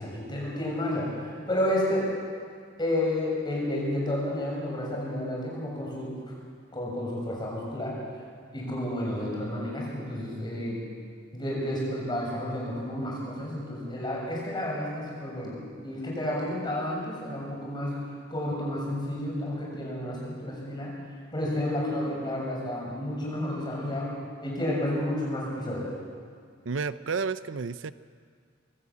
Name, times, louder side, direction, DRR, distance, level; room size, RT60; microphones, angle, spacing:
voice 1, 0.0-2.1 2.8-6.1 6.7-8.0 8.5-10.8 11.3-18.0 18.3-20.9 21.3-24.1 24.4-25.9, left 1 dB, 25° left, -3 dB, 7.0 m, -31 dB
voice 2, 26.7-27.9, right 5 dB, 75° right, 14 dB, 0.6 m, -31 dB
24.0 x 13.5 x 8.6 m, 2.1 s
head